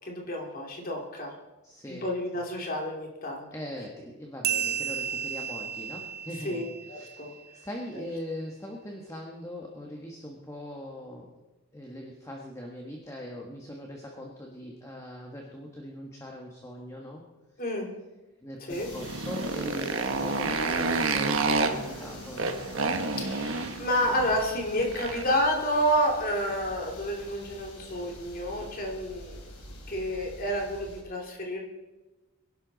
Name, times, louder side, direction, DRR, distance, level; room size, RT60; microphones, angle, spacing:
voice 1, 0.0-1.3 1.9-3.5 6.4-6.6 6.9-7.3 17.6-17.9 18.7-18.9 23.2-29.4 29.9-31.6, equal, 40° left, 0 dB, 2.7 m, -29 dB
voice 2, 1.6-2.4 3.5-11.3 11.7-17.2 18.4-22.5, left 1 dB, 15° left, 0 dB, 1.4 m, -41 dB
sound 1, 4.4-7.5, right 8 dB, 45° right, 0.7 m, -33 dB
sound 2, 18.7-31.0, left 1 dB, 80° left, 3.4 m, -47 dB
Motorcycle, 18.8-25.4, right 3 dB, 60° right, 1.3 m, -29 dB
23.0 x 11.5 x 4.1 m, 1.1 s
head